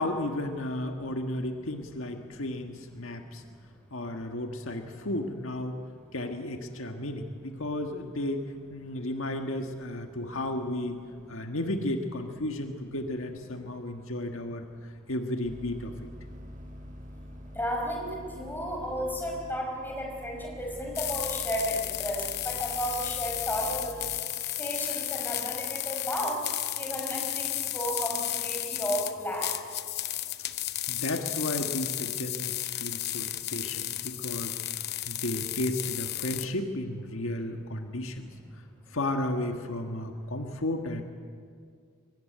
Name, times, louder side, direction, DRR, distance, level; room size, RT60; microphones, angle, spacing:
voice 1, 0.0-3.4 3.9-5.8 6.1-8.4 8.7-11.0 11.3-14.6 15.1-15.9 30.9-34.6 35.0-38.3 38.9-41.0, left 1 dB, 75° left, 4 dB, 1.6 m, -33 dB
sound 1, 15.4-24.2, equal, 35° right, 1.5 m, -46 dB
voice 2, 17.5-24.0 24.6-26.4 26.8-29.5, equal, 10° left, -1 dB, 5.4 m, -33 dB
sound 2, 21.0-36.5, left 14 dB, 50° left, 0.8 m, -33 dB
23.0 x 18.5 x 9.3 m, 2.1 s
head